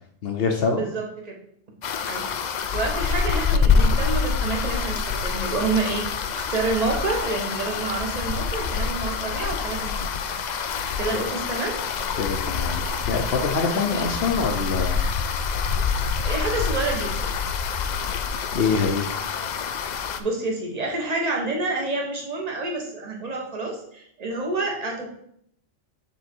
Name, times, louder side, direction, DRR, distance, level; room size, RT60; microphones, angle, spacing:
voice 1, 0.2-0.8 12.2-15.0 18.5-19.1, left 4 dB, 55° left, 4 dB, 0.9 m, -24 dB
voice 2, 0.7-1.4 2.0-2.3 2.7-6.0 6.3-10.4 11.0-11.8 13.9-14.1 16.2-17.3 20.2-25.1, right 3 dB, 35° right, 0 dB, 1.2 m, -28 dB
sound 1, 1.8-20.2, left 5 dB, 85° left, 0.4 m, -26 dB
7.2 x 3.6 x 4.4 m, 0.68 s
omnidirectional pair, 1.3 m